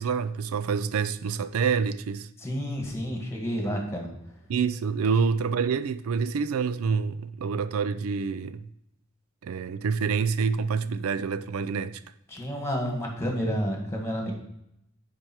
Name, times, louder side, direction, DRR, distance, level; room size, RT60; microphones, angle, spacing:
voice 1, 0.0-2.3 4.5-8.6 9.4-12.0, right 5 dB, 80° right, 0.4 m, -27 dB
voice 2, 2.4-4.1 12.3-14.4, equal, 15° left, 1.9 m, -30 dB
9.8 x 5.0 x 4.6 m
head